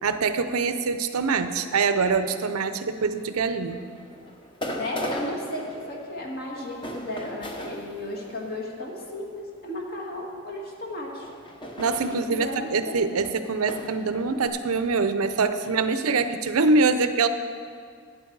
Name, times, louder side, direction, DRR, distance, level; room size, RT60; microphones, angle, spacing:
voice 1, 0.0-3.8 11.8-17.3, right 4 dB, 85° right, 10 dB, 0.6 m, -24 dB
sound 1, 2.9-10.0 10.9-14.5, equal, 25° left, 0.9 m, -39 dB
voice 2, 4.8-11.3 12.1-13.3, left 1 dB, 45° left, -1 dB, 1.8 m, -34 dB
12.0 x 9.1 x 4.7 m, 2.1 s
head